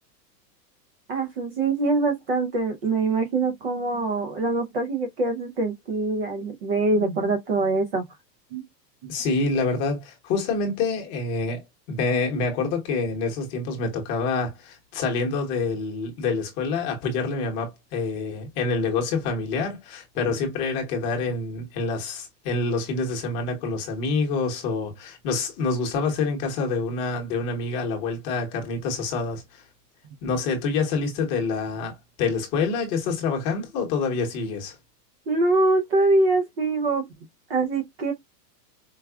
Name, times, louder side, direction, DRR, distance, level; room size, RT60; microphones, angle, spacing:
voice 1, 1.1-8.0 8.5-8.6 9.0-9.1 35.3-37.0 37.5-38.1, right 3 dB, 35° right, 0.5 m, -24 dB
voice 2, 9.1-29.6 30.2-34.8, left 4 dB, 25° left, 1.0 m, -27 dB
4.7 x 2.2 x 2.3 m
supercardioid pair, 170°, 50 cm